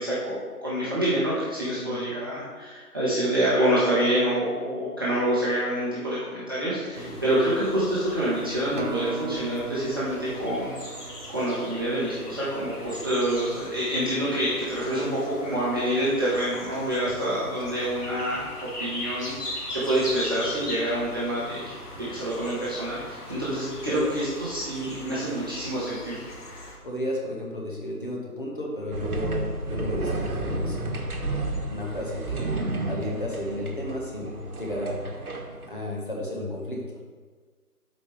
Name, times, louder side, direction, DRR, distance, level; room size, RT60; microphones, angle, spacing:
voice 1, 0.0-10.8 11.3-18.5 18.8-26.2, right 1 dB, 15° right, -11 dB, 1.1 m, -27 dB
sound 1, 6.9-26.8, left 1 dB, 75° left, 2.5 m, -40 dB
voice 2, 6.9-7.2 17.0-17.2 23.3-23.4 23.9-24.0 26.8-31.1 31.7-35.0 35.7-37.0, left 1 dB, 35° left, -2 dB, 1.5 m, -33 dB
Acoustic guitar, 8.8-13.2 13.8-14.0, right 7 dB, 50° right, 0.5 m, -39 dB
sound 2, 28.9-35.7, right 2 dB, 65° right, 1.4 m, -31 dB
13.5 x 5.2 x 3.4 m, 1.5 s
figure-of-eight pair, 165°, 46 cm